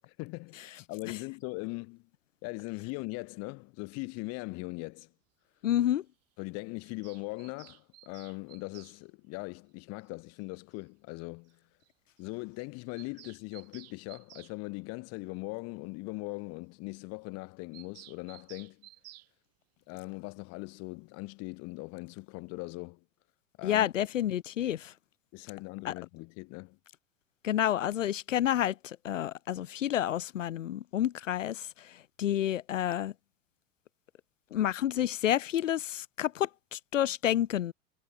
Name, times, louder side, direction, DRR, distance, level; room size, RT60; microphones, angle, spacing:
voice 1, 0.1-2.0 2.4-5.1 6.4-11.6 12.2-18.9 19.9-23.0 23.6-23.9 25.3-26.8, left 28 dB, 40° left, 1.6 m, -40 dB
voice 2, 5.6-6.0 23.6-24.9 25.8-25.9 27.4-31.7 32.2-33.1 34.5-37.7, left 11 dB, 70° left, 0.5 m, -29 dB
Bird vocalization bird call bird song, 6.8-9.0 10.4-10.5 10.8-10.9 11.1-11.2 11.5-11.6 11.8-11.9 12.2-12.3 12.6-14.6 17.7-19.3, right 18 dB, 40° right, 7.6 m, -54 dB
figure-of-eight pair, 85°, 39 cm